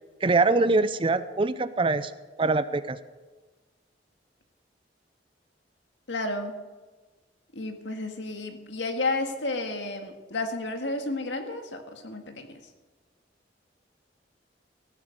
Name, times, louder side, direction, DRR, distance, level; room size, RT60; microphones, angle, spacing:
voice 1, 0.2-2.1 2.4-3.0, right 3 dB, 30° right, 14 dB, 0.5 m, -23 dB
voice 2, 6.1-6.6 7.5-12.6, left 2 dB, 85° left, 5 dB, 1.8 m, -32 dB
16.0 x 9.5 x 6.5 m, 1.3 s
head